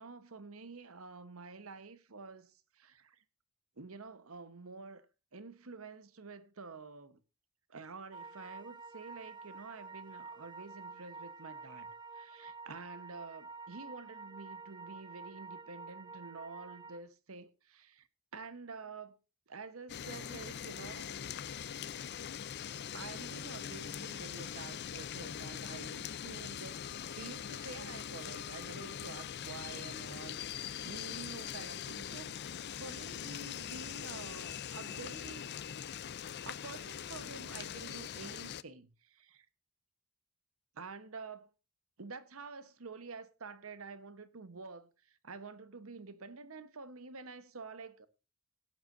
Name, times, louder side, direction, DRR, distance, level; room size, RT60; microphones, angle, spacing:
voice 1, 0.0-3.2 3.8-5.1 5.3-7.2 7.7-11.9 12.1-18.1 18.3-19.2 19.5-21.2 22.9-35.6 36.4-39.5 40.7-41.5 42.0-48.1, right 4 dB, 70° right, 1.1 m, -49 dB
sound 1, 8.1-17.0, right 4 dB, 20° right, 0.8 m, -49 dB
sound 2, 19.9-38.6, left 9 dB, 50° left, 0.5 m, -42 dB
17.5 x 9.3 x 2.6 m
head